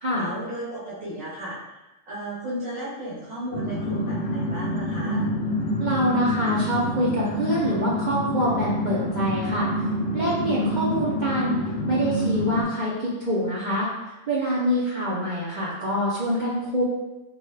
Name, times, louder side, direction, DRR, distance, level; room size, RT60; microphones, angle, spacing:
voice 1, 0.1-5.2, right 1 dB, 85° right, -8 dB, 1.4 m, -34 dB
sound 1, 3.5-12.6, equal, 65° left, 0.8 m, -27 dB
voice 2, 5.8-9.7 10.1-11.6 11.9-13.9 14.3-16.8, equal, 45° right, -8 dB, 0.6 m, -25 dB
3.7 x 2.3 x 3.1 m, 0.99 s
omnidirectional pair, 1.4 m